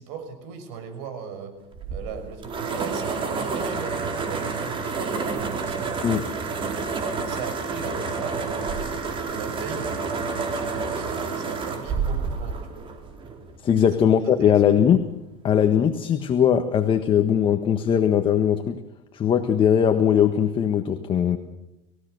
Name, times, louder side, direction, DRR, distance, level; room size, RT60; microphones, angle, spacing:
voice 1, 0.0-1.6 1.9-6.2 7.2-12.9 13.7-13.9 14.2-14.5, right 6 dB, 80° right, 8 dB, 6.0 m, -38 dB
sound 1, 1.7-13.6, right 4 dB, 35° right, 4.4 m, -29 dB
voice 2, 13.6-15.1 15.4-18.8 19.1-21.4, left 8 dB, 35° left, 7 dB, 1.5 m, -20 dB
28.0 x 16.0 x 6.6 m, 0.90 s
supercardioid pair, 120°, 15 cm